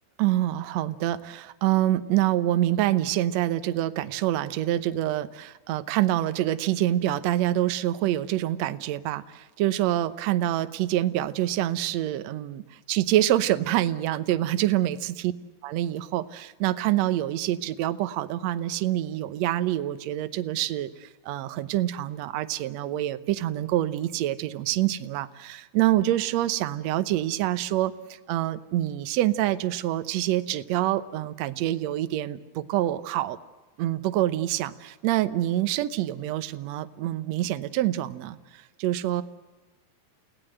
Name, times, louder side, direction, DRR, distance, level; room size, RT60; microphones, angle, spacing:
voice 1, 0.2-15.3 15.6-33.4 33.8-39.2, right 13 dB, 70° right, 12 dB, 1.7 m, -26 dB
29.5 x 17.5 x 7.8 m, 1.2 s
omnidirectional pair, 4.1 m